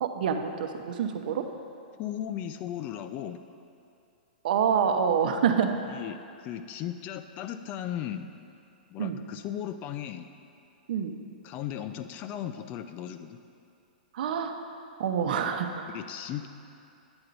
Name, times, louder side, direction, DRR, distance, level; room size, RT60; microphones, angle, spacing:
voice 1, 0.0-1.5 4.4-5.7 9.0-9.2 10.9-11.1 14.1-14.5 15.0-15.9, right 7 dB, 65° right, 5 dB, 0.9 m, -26 dB
voice 2, 2.0-3.4 5.9-8.3 8.9-10.3 11.4-13.4 15.9-16.5, left 10 dB, 30° left, 9 dB, 0.5 m, -36 dB
10.0 x 8.9 x 4.0 m, 2.6 s
hypercardioid pair, 140°, 5 cm